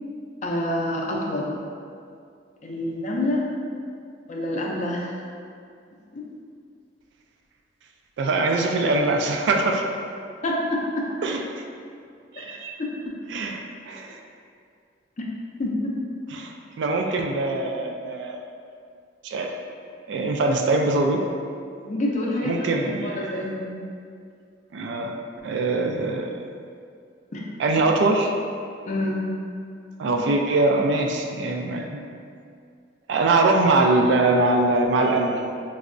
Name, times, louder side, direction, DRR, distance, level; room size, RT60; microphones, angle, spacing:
voice 1, 0.4-1.6 2.6-3.5 4.3-5.2 6.1-6.2 10.4-11.1 12.3-12.9 15.6-15.9 21.8-22.7 23.0-23.8 27.3-27.4 28.8-29.3, left 1 dB, 40° left, -2 dB, 0.4 m, -27 dB
voice 2, 8.2-9.8 11.2-11.4 12.3-12.8 13.3-14.2 16.3-18.4 19.2-19.5 20.1-21.2 22.4-23.4 24.7-25.1 25.4-26.4 27.6-28.3 30.0-32.0 33.1-35.4, right 2 dB, 70° right, 2 dB, 0.3 m, -22 dB
4.3 x 2.0 x 2.5 m, 2.3 s
head